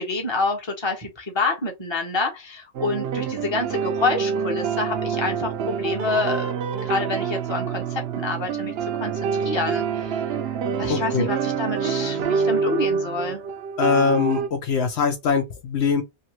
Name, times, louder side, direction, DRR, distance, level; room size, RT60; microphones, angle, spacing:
voice 1, 0.0-10.4 10.8-13.4, left 3 dB, 25° left, 0.9 m, -28 dB
sound 1, 2.7-14.5, right 6 dB, 65° right, 0.7 m, -26 dB
voice 2, 10.9-11.3 13.8-16.0, left 5 dB, 70° left, 0.9 m, -22 dB
2.9 x 2.8 x 2.9 m
omnidirectional pair, 1.2 m